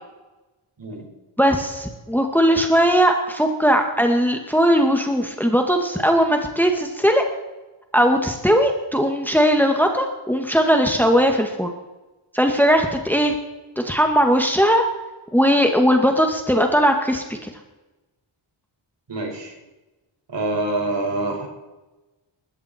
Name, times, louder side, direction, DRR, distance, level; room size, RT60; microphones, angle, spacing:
voice 1, 1.4-7.2 7.9-11.7 12.3-13.3 13.8-14.8 15.3-17.5, equal, 5° left, 4 dB, 2.0 m, -18 dB
voice 2, 19.1-19.5 20.3-21.5, right 2 dB, 55° right, 1 dB, 5.6 m, -26 dB
19.5 x 15.0 x 4.5 m, 1.1 s
cardioid pair, 80°, 50 cm